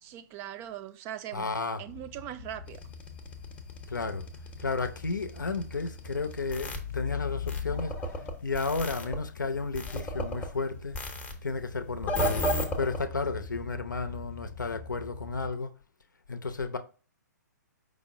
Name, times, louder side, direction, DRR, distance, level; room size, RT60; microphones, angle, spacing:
voice 1, 0.0-1.5 1.8-2.8, right 12 dB, 25° right, 0.3 m, -40 dB
voice 2, 1.3-1.8 3.9-4.3 4.6-7.9 8.4-11.0 11.4-12.5 12.8-15.7 16.3-16.8, left 4 dB, 85° left, 0.6 m, -32 dB
sound 1, 1.9-15.5, left 5 dB, 50° left, 0.4 m, -42 dB
sound 2, 2.7-6.8 7.5-9.2 9.7-10.5 10.9-11.3 12.0-13.0, equal, 15° left, 0.6 m, -33 dB
5.1 x 2.1 x 4.8 m
hypercardioid pair, 130°, 10 cm